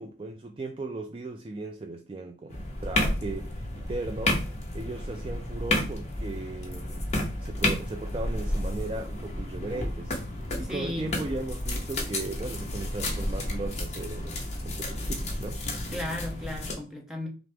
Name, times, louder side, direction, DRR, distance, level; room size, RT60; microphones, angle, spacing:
voice 1, 0.0-4.5 4.7-7.1 7.3-15.6, right 2 dB, 25° right, 0.3 m, -37 dB
sound 1, 2.5-16.7, left 1 dB, 35° left, 1.0 m, -31 dB
voice 2, 10.6-11.1 15.9-17.3, left 1 dB, 5° right, 0.7 m, -35 dB
5.7 x 2.0 x 3.4 m
head